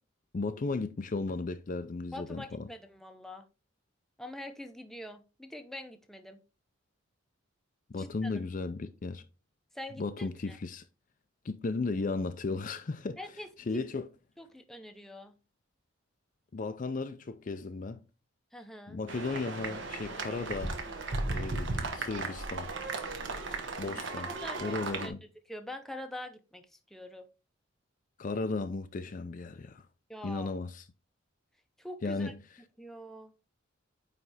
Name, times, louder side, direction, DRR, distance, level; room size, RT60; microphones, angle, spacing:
voice 1, 0.3-2.6 7.9-9.2 10.0-10.8 11.4-13.2 13.7-14.1 16.5-18.0 18.9-20.8 21.3-22.7 23.8-24.3 24.6-25.2 28.2-29.9 30.2-30.8 32.0-32.4, left 3 dB, 40° left, 0.4 m, -35 dB
voice 2, 2.1-3.4 4.2-6.4 8.0-8.3 9.7-10.6 13.2-13.8 14.4-15.3 18.5-19.0 24.2-25.1 25.5-27.3 30.1-30.5 31.8-32.3 32.8-33.3, left 1 dB, ahead, 0.6 m, -44 dB
sound 1, 19.1-25.1, right 3 dB, 60° right, 1.1 m, -36 dB
9.1 x 3.3 x 4.0 m
head